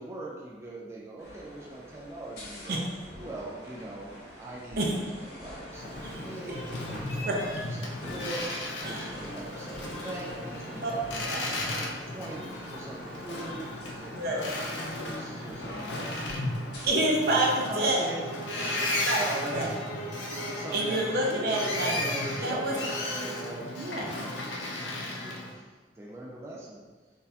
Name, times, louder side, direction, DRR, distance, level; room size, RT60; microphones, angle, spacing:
voice 1, 0.0-2.8 3.2-14.5 14.9-16.1 17.5-18.3 18.9-21.6 21.9-23.8 25.2-27.1, right 2 dB, 15° right, -4 dB, 0.3 m, -42 dB
sound 1, 1.2-16.9, equal, 65° left, 1.0 m, -46 dB
Boat Water vehicle, 5.7-25.5, left 1 dB, 80° left, 0.6 m, -35 dB
voice 2, 8.8-9.2 10.8-10.9 11.3-11.4 14.1-14.4 16.8-18.1 19.0-19.2 19.5-19.7 20.7-22.0 22.4-22.7 23.8-24.1, right 1 dB, 60° right, -1 dB, 0.7 m, -27 dB
sound 2, 17.7-23.5, right 2 dB, 50° left, 1.5 m, -41 dB
4.0 x 2.6 x 2.7 m, 1.3 s
head